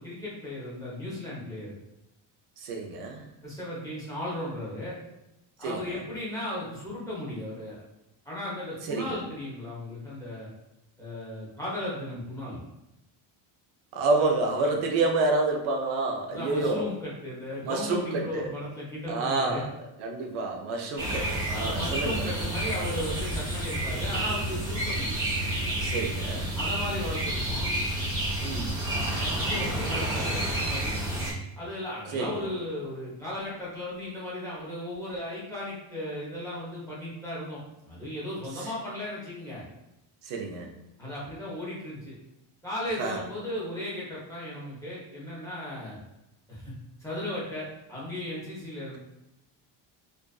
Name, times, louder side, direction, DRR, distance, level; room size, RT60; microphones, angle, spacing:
voice 1, 0.0-1.8 3.4-5.0 5.6-7.8 8.2-10.5 11.0-12.6 16.3-19.6 21.5-25.1 26.5-27.7 29.2-31.0 31.6-39.6 41.0-42.2 42.6-46.0 46.5-46.7 47.0-49.0, left 1 dB, 5° left, -8 dB, 0.6 m, -36 dB
voice 2, 2.6-3.3 5.6-6.0 8.9-9.2 13.9-16.9 17.6-18.5 19.1-19.7 20.0-22.3 25.8-26.5 28.4-28.8 32.1-32.5 38.6-38.7 40.2-40.7 43.0-43.2, right 3 dB, 90° right, 2 dB, 0.6 m, -29 dB
sound 1, 21.0-31.3, right 1 dB, 40° right, 1.0 m, -30 dB
2.5 x 2.3 x 2.2 m, 0.91 s
cardioid pair, 165°, 49 cm